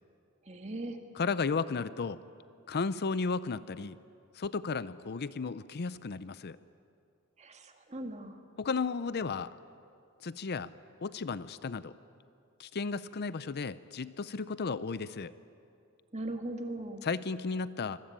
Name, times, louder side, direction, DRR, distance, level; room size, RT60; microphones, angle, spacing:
voice 1, 0.5-1.0 7.4-8.4 16.1-17.0, right 1 dB, 30° right, 5 dB, 2.0 m, -39 dB
voice 2, 1.1-2.2 2.7-4.0 4.3-6.6 8.6-9.5 10.2-10.7 11.0-11.9 12.6-15.3 17.0-18.0, left 4 dB, 50° left, 15 dB, 0.5 m, -34 dB
25.5 x 21.0 x 8.9 m, 2.5 s
head